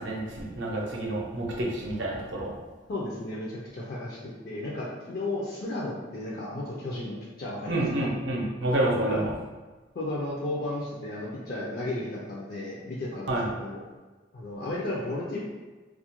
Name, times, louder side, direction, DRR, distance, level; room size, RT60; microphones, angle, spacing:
voice 1, 0.0-2.5 7.7-9.3 13.3-13.5, right 1 dB, 75° right, -2 dB, 0.6 m, -28 dB
voice 2, 2.9-4.2 4.4-7.8 8.9-9.2 9.9-13.8 14.3-15.4, left 2 dB, 50° left, -5 dB, 0.4 m, -34 dB
2.3 x 2.1 x 2.8 m, 1.3 s
head